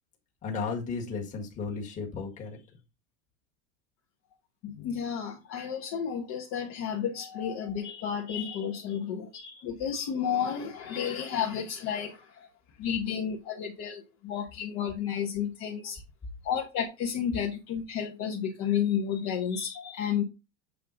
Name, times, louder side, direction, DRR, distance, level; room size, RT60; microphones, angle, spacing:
voice 1, 0.4-2.6, left 4 dB, 20° left, 1.6 m, -34 dB
voice 2, 4.6-12.5 12.8-16.0 16.4-20.2, left 8 dB, 40° left, 1.1 m, -32 dB
7.5 x 3.7 x 3.9 m
supercardioid pair, 165°, 36 cm